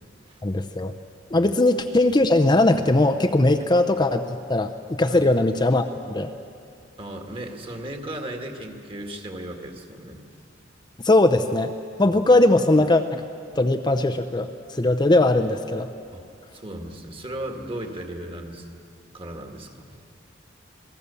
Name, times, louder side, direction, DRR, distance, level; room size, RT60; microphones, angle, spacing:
voice 1, 0.4-0.9 1.3-4.7 5.0-6.3 11.0-11.7 12.0-13.2 13.5-15.9, left 2 dB, 25° left, 7 dB, 0.7 m, -20 dB
voice 2, 7.0-10.2 12.1-12.2 16.1-16.2 16.5-18.7 19.1-20.0, right 1 dB, 30° right, 3 dB, 2.0 m, -36 dB
27.5 x 18.5 x 7.0 m, 2.4 s
head